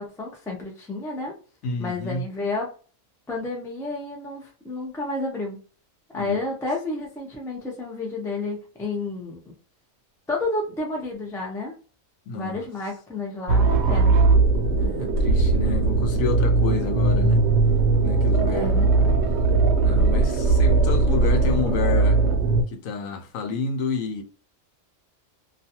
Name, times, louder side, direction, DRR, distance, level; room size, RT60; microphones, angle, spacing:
voice 1, 0.0-1.3 1.8-2.7 3.3-5.6 6.1-9.4 10.3-11.8 12.3-14.2 18.5-19.2, left 2 dB, 5° left, 0.3 m, -30 dB
voice 2, 1.6-2.2 6.1-6.4 12.3-12.6 14.7-17.4 18.0-18.7 19.8-22.2 22.7-24.2, left 4 dB, 75° left, 1.0 m, -29 dB
sound 1, 13.5-22.6, right 3 dB, 65° right, 0.8 m, -19 dB
2.4 x 2.3 x 2.8 m
omnidirectional pair, 1.4 m